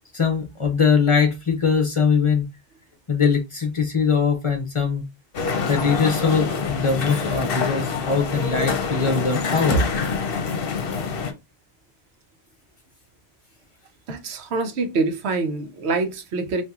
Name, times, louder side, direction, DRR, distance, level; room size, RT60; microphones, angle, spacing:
voice 1, 0.1-2.4 3.1-5.0 5.7-9.8, left 5 dB, 35° left, 0.7 m, -21 dB
sound 1, 5.3-11.3, left 5 dB, 65° left, 0.9 m, -26 dB
voice 2, 14.1-16.6, right 3 dB, 90° right, 1.0 m, -25 dB
2.8 x 2.6 x 3.5 m
omnidirectional pair, 1.1 m